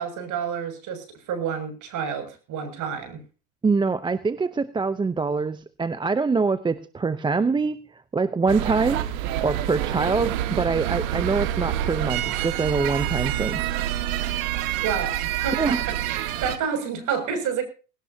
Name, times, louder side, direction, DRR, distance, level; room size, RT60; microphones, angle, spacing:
voice 1, 0.0-3.2 9.8-10.2 14.8-17.6, right 7 dB, 40° right, 9 dB, 7.0 m, -30 dB
voice 2, 3.6-9.0 9.4-13.6 15.6-15.8, right 4 dB, 10° right, 13 dB, 0.8 m, -24 dB
sound 1, 8.5-16.6, right 12 dB, 60° right, 1.9 m, -27 dB
20.0 x 18.0 x 2.9 m, 0.36 s
hypercardioid pair, 115°, 46 cm